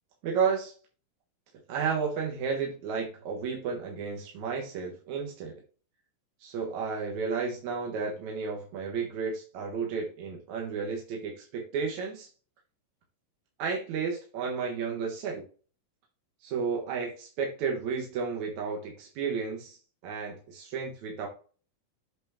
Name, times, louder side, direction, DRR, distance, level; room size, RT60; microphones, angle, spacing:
voice 1, 0.2-0.7 1.7-5.5 6.4-12.3 13.6-15.4 16.4-19.8 20.0-21.3, right 5 dB, 65° right, -1 dB, 2.3 m, -32 dB
7.9 x 4.0 x 3.5 m, 0.38 s
omnidirectional pair, 4.1 m